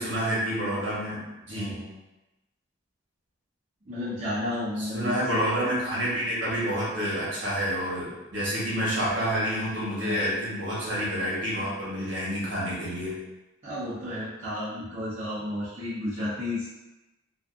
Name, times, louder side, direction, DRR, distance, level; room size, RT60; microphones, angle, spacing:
voice 1, 0.0-1.8 4.8-13.2, equal, 65° right, -8 dB, 1.0 m, -28 dB
voice 2, 1.5-1.9 3.8-5.4 8.7-8.8 10.0-10.2 10.8-10.9 13.6-16.7, left 1 dB, 35° right, -12 dB, 0.6 m, -32 dB
2.4 x 2.4 x 2.4 m, 1.0 s
head